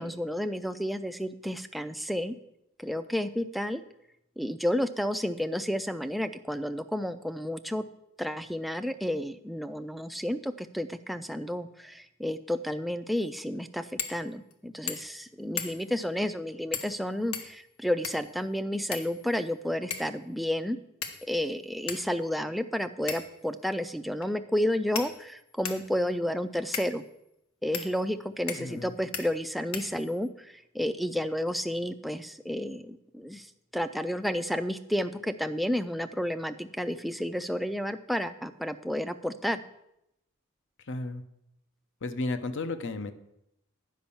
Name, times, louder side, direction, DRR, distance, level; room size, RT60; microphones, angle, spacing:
voice 1, 0.0-2.3 2.8-3.8 4.4-7.8 8.2-20.8 21.2-27.0 27.6-39.6, equal, ahead, 8 dB, 0.3 m, -31 dB
sound 1, 14.0-14.2 14.5-14.6 14.9-15.2 15.6-16.0 16.7-17.0 17.3-18.3 18.9-19.5 19.9-20.2 21.0-21.4 21.9-22.0 23.1-23.4 24.2-24.3 24.9-25.9 26.7-26.9 27.7-27.9 28.5-28.8 29.1-29.3 29.7-30.3, left 7 dB, 75° left, 1.1 m, -37 dB
voice 2, 28.5-28.9 40.9-41.2 42.0-43.1, left 2 dB, 55° left, 10 dB, 0.7 m, -33 dB
10.0 x 5.2 x 7.0 m, 0.83 s
head